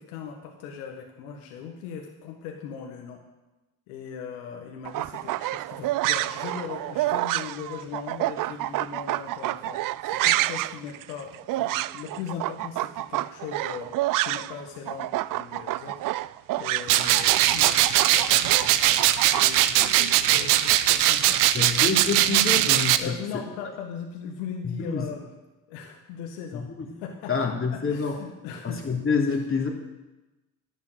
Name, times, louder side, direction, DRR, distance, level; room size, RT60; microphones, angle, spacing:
voice 1, 0.0-3.2 3.9-13.9 14.2-21.4 23.0-25.3 25.7-26.7 27.0-27.3 27.7-28.8, left 7 dB, 80° left, 2 dB, 1.7 m, -39 dB
sound 1, 4.8-14.6 14.9-19.9, right 16 dB, 50° right, 0.5 m, -28 dB
sound 2, 16.9-23.0, right 13 dB, 75° right, 0.8 m, -20 dB
voice 2, 21.5-23.1 24.6-25.0 26.5-26.9 27.3-28.2 28.6-29.7, left 4 dB, 30° left, 1 dB, 3.3 m, -27 dB
11.0 x 9.2 x 8.0 m, 1.1 s
hypercardioid pair, 60°, 44 cm